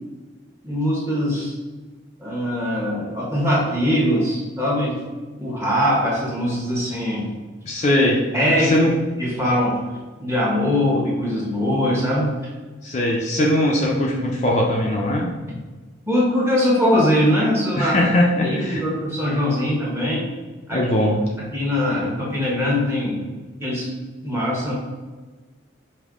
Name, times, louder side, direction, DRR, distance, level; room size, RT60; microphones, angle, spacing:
voice 1, 0.6-1.5 2.2-5.0 5.4-7.3 8.3-8.8 9.2-9.8 10.2-12.5 16.1-17.9 18.4-20.2 20.7-20.8 21.5-23.2 23.6-23.9 24.2-24.7, left 1 dB, 15° right, -5 dB, 1.1 m, -21 dB
voice 2, 7.7-8.2 8.6-8.9 12.8-15.3 17.8-18.8 20.7-21.2, left 1 dB, 35° left, -2 dB, 0.5 m, -20 dB
5.3 x 2.8 x 3.6 m, 1.3 s
head